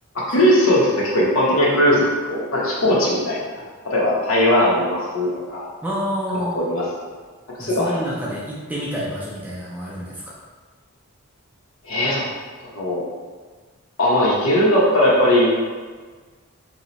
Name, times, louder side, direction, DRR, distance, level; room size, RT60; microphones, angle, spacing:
voice 1, 0.1-3.4 3.8-5.7 6.5-6.8 7.6-8.0 11.8-12.3 12.6-13.0 14.0-15.5, equal, 65° left, -5 dB, 0.8 m, -19 dB
voice 2, 5.8-6.6 7.6-10.3, equal, 5° right, -6 dB, 0.4 m, -28 dB
2.8 x 2.1 x 3.9 m, 1.5 s
head